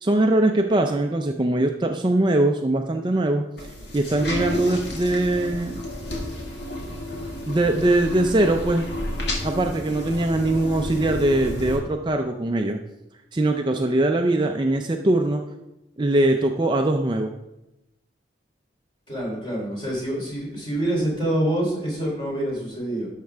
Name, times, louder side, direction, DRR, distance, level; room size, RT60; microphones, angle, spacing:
voice 1, 0.0-3.4 3.9-5.8 7.5-8.8 9.4-12.8 13.3-15.4 16.0-17.3, right 1 dB, 25° right, 4 dB, 0.4 m, -21 dB
sound 1, 3.6-11.8, left 1 dB, 70° left, 2.0 m, -31 dB
voice 2, 19.1-23.1, right 1 dB, 25° left, -3 dB, 3.3 m, -26 dB
11.5 x 6.5 x 3.5 m, 0.92 s
head